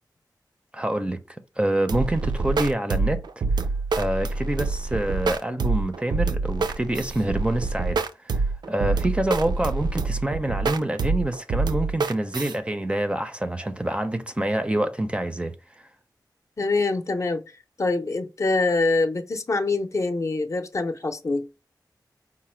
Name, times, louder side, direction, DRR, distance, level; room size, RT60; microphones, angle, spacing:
voice 1, 0.7-1.2 1.6-3.2 3.9-15.8, right 1 dB, 15° right, 0.5 m, -26 dB
sound 1, 1.9-12.5, right 3 dB, 70° right, 0.4 m, -26 dB
voice 2, 16.6-17.4 17.8-21.5, left 3 dB, 40° left, 0.6 m, -24 dB
4.9 x 2.1 x 4.3 m
wide cardioid pair, 110°, 8 cm